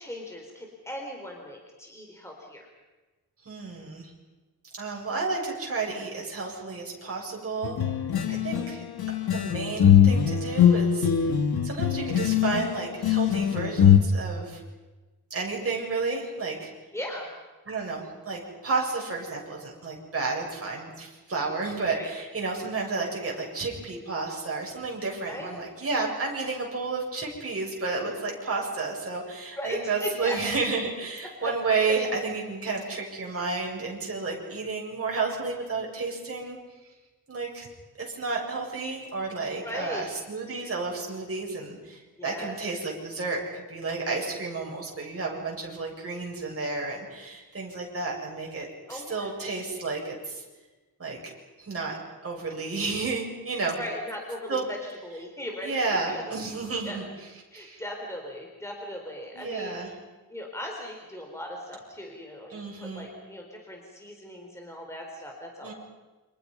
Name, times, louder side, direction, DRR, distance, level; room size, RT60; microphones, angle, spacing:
voice 1, 0.0-2.7 8.3-8.4 16.9-17.3 21.9-22.1 25.2-25.5 29.6-30.4 31.4-31.5 39.6-40.1 42.2-42.8 48.9-49.3 53.8-55.7 56.1-56.2 56.8-57.0 57.5-59.7 60.3-65.7, left 1 dB, 5° left, 1 dB, 3.9 m, -38 dB
voice 2, 3.5-4.1 4.7-7.8 8.3-8.8 9.3-11.3 11.6-14.6 15.3-16.7 17.7-36.6 37.3-37.7 38.0-50.4 51.0-51.2 51.6-52.0 52.2-53.8 54.5-54.7 55.6-57.1 57.5-57.8 59.3-59.9 62.5-63.1 65.6-65.7, right 3 dB, 40° right, -2 dB, 7.4 m, -31 dB
sound 1, 7.6-14.0, left 9 dB, 85° left, 2.0 m, -21 dB
29.5 x 26.5 x 5.6 m, 1.2 s
wide cardioid pair, 165°, 36 cm